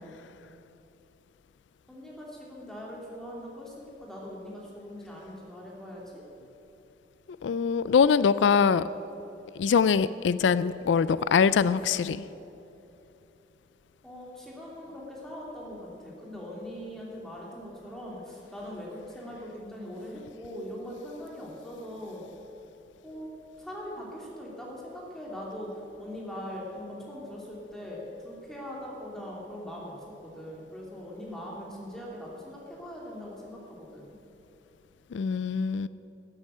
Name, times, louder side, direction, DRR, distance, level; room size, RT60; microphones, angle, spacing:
voice 1, 1.9-6.2 14.0-22.3 23.0-23.3 23.6-30.0 30.2-34.1, equal, 5° left, -4 dB, 2.9 m, -41 dB
voice 2, 7.4-8.8 9.6-12.2 35.1-35.9, left 6 dB, 85° left, 16 dB, 0.4 m, -23 dB
13.0 x 9.0 x 9.2 m, 2.9 s
head